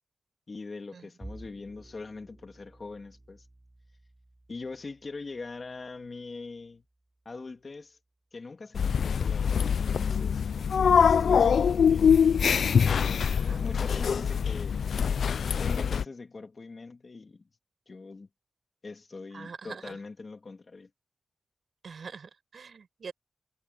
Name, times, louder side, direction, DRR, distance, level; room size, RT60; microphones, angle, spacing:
voice 1, 0.5-3.5 4.5-6.8 7.2-8.0 8.3-12.1 12.8-13.3 13.6-14.8 15.6-17.5 17.9-18.3 18.8-20.9, left 3 dB, 40° left, 2.5 m, -42 dB
Bowed string instrument, 1.2-7.6, right 1 dB, 15° right, 7.5 m, -53 dB
sound 1, 8.7-16.0, left 7 dB, 85° left, 0.3 m, -24 dB
voice 2, 13.2-13.7 19.3-20.0 21.8-23.1, right 5 dB, 65° right, 5.2 m, -44 dB
wide cardioid pair, 135°, 0 cm